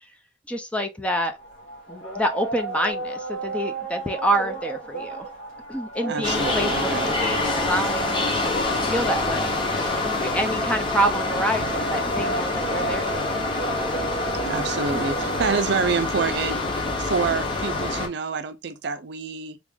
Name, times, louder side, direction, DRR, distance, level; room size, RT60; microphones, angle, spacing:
voice 1, 0.5-1.4 1.9-5.3 5.7-13.5 14.9-15.0, right 1 dB, 5° left, 0.4 m, -28 dB
sound 1, 1.3-17.6, right 3 dB, 85° left, 1.2 m, -34 dB
voice 2, 6.0-7.2 14.5-19.6, right 5 dB, 60° right, 0.5 m, -27 dB
sound 2, 6.2-18.1, left 2 dB, 25° left, 0.8 m, -26 dB
3.5 x 2.4 x 3.5 m
head